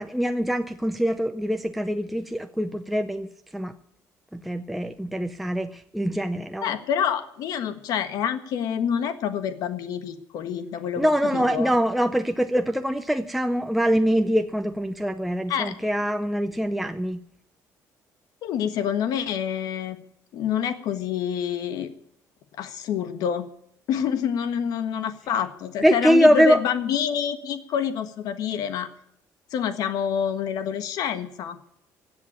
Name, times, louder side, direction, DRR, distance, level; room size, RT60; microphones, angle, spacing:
voice 1, 0.0-3.3 3.5-3.7 4.3-6.7 11.0-17.2 25.8-26.6, equal, ahead, 7 dB, 0.6 m, -23 dB
voice 2, 6.6-11.7 15.5-15.7 18.4-20.0 20.3-21.9 22.6-23.5 23.9-28.9 29.5-31.6, left 8 dB, 70° left, 10 dB, 1.4 m, -27 dB
16.5 x 7.9 x 10.0 m, 0.71 s
cardioid pair, 140°, 7 cm